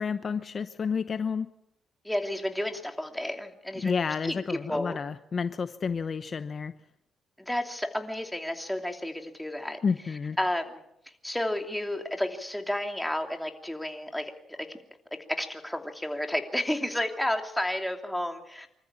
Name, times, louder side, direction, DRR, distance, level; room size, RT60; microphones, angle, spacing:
voice 1, 0.0-1.5 3.8-6.7 9.8-10.4, left 5 dB, 45° left, 11 dB, 0.8 m, -30 dB
voice 2, 2.0-3.9 4.2-5.0 7.4-9.8 10.4-10.8 11.2-14.8 15.3-18.7, left 1 dB, 5° left, 4 dB, 2.8 m, -31 dB
25.5 x 14.0 x 8.5 m, 0.78 s
cardioid pair, 90°, 0 cm